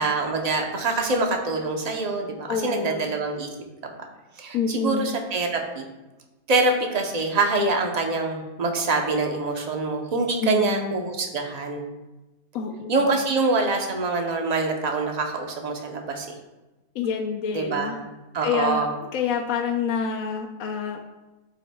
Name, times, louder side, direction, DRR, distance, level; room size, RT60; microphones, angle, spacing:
voice 1, 0.0-3.5 4.4-5.8 6.5-11.8 12.9-16.3 17.5-18.0 18.3-18.9, right 3 dB, 35° right, 2 dB, 0.7 m, -25 dB
voice 2, 2.5-3.1 4.5-5.1 10.4-10.9 12.5-13.2 16.9-17.9 18.4-21.0, left 6 dB, 70° left, 2 dB, 1.0 m, -27 dB
12.5 x 4.6 x 2.3 m, 1.1 s
omnidirectional pair, 1.6 m